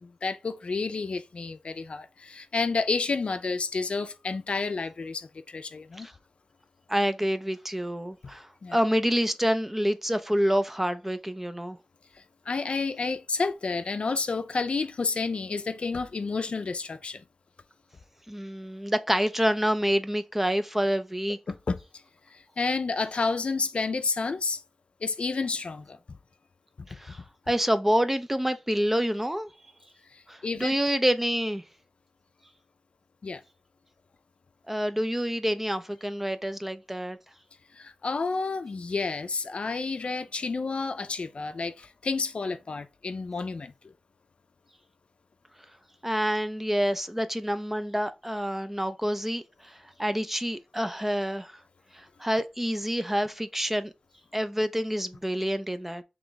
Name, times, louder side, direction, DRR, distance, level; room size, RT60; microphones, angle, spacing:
voice 1, 0.0-6.1 8.6-8.8 12.5-17.2 21.5-21.8 22.3-24.6 25.0-26.0 26.8-26.9 30.1-30.8 33.2-33.4 37.7-43.9, left 4 dB, 65° left, 0.4 m, -30 dB
voice 2, 6.9-11.8 18.3-21.4 26.9-27.2 27.5-29.5 30.3-31.6 34.7-37.2 46.0-51.5 51.9-53.9 54.3-56.0, equal, 10° right, 0.4 m, -27 dB
3.3 x 3.0 x 3.8 m
wide cardioid pair, 75°, 2 cm